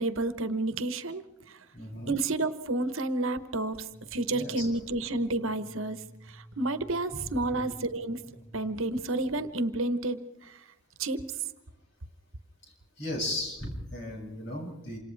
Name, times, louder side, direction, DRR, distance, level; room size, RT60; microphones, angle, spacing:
voice 1, 0.0-1.6 2.1-6.0 6.3-8.2 8.5-10.5 11.0-11.2, right 2 dB, 65° right, 11 dB, 1.2 m, -30 dB
voice 2, 1.7-2.2 4.3-4.7 7.1-7.2 7.5-7.7 13.0-15.0, left 1 dB, 55° left, -1 dB, 7.7 m, -36 dB
sound 1, 3.9-9.6, right 1 dB, 5° left, 6.9 m, -53 dB
28.0 x 26.5 x 3.5 m, 0.99 s
head